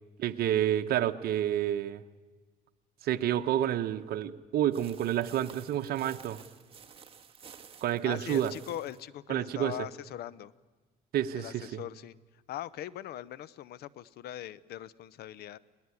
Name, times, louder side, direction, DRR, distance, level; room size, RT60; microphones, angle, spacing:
voice 1, 0.2-2.0 3.0-6.4 7.8-8.5 9.3-9.8 11.1-11.8, right 11 dB, 65° right, 7 dB, 1.0 m, -29 dB
sound 1, 4.7-9.1, right 7 dB, 35° right, 1.6 m, -52 dB
voice 2, 8.0-10.5 11.3-12.2 12.5-15.6, left 12 dB, 70° left, 20 dB, 0.8 m, -41 dB
22.0 x 18.5 x 9.7 m, 1.3 s
cardioid pair, 110°, 17 cm